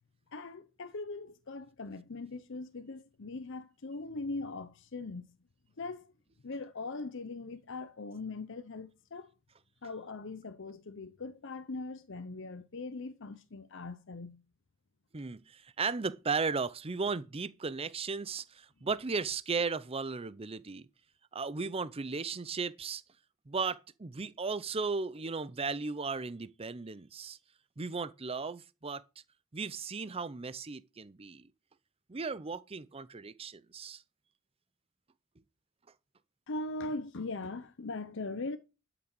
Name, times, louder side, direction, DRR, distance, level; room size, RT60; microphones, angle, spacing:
voice 1, 0.3-5.3 5.8-6.1 6.4-9.3 9.8-14.4 36.5-38.6, left 3 dB, 60° left, 0.8 m, -40 dB
voice 2, 15.1-20.9 21.3-23.0 23.5-27.4 27.8-29.0 29.5-31.5 32.1-34.0, right 4 dB, 30° right, 0.6 m, -36 dB
12.0 x 6.0 x 6.1 m
head